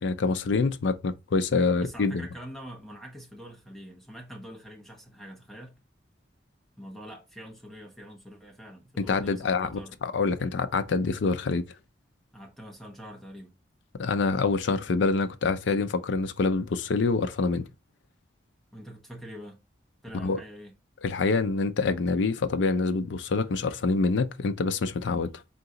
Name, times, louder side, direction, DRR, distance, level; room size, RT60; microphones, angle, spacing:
voice 1, 0.0-2.3 9.0-11.6 14.0-17.7 20.2-20.4 21.0-25.3, left 4 dB, 70° left, 0.4 m, -26 dB
voice 2, 1.8-5.8 6.8-10.0 12.3-13.5 18.7-19.6 20.0-20.7, equal, ahead, 0.9 m, -44 dB
3.9 x 2.8 x 3.7 m
head